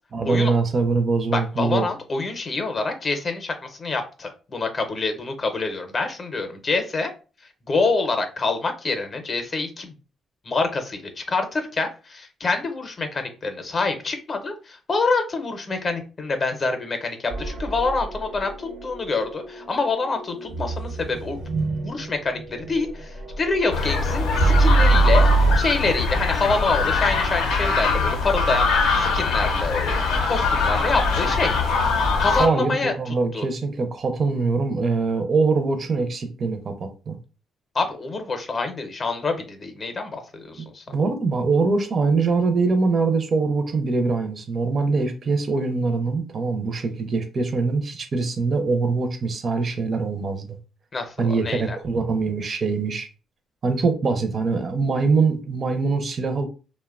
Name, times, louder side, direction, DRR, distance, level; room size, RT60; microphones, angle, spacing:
voice 1, 0.1-1.9 32.4-37.2 40.6-50.6 51.2-53.1 53.6-56.4, right 4 dB, 45° right, 0.4 m, -23 dB
voice 2, 1.3-7.1 7.7-9.9 10.4-21.4 21.8-25.3 25.6-31.6 32.2-32.9 33.3-33.4 37.7-40.8 50.9-51.8, left 3 dB, 40° left, 0.5 m, -26 dB
sound 1, 17.3-25.6, right 3 dB, 85° right, 0.7 m, -24 dB
sound 2, 23.7-32.5, left 4 dB, 90° left, 0.5 m, -22 dB
2.8 x 2.1 x 2.3 m
cardioid pair, 90°, 0 cm